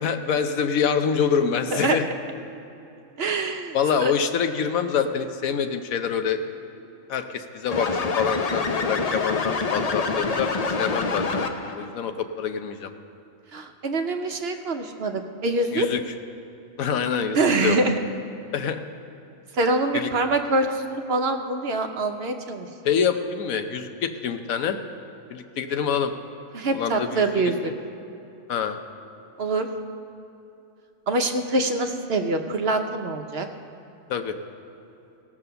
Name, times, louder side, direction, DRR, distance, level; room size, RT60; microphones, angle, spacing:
voice 1, 0.0-2.1 3.7-6.4 7.1-10.5 10.8-11.4 11.7-12.9 15.7-16.0 16.8-17.8 18.5-18.8 19.9-20.1 22.8-24.8 25.3-26.1 26.7-27.5 28.5-28.8 34.1-34.3, left 7 dB, 90° left, 7 dB, 1.2 m, -26 dB
voice 2, 3.2-3.8 4.0-4.1 13.5-15.9 17.3-18.0 19.5-22.7 26.5-27.7 29.4-29.7 31.1-33.5, right 2 dB, 55° right, 5 dB, 0.9 m, -24 dB
sound 1, 7.7-11.8, left 4 dB, 40° left, 0.5 m, -26 dB
17.5 x 6.0 x 6.8 m, 2.9 s
omnidirectional pair, 1.4 m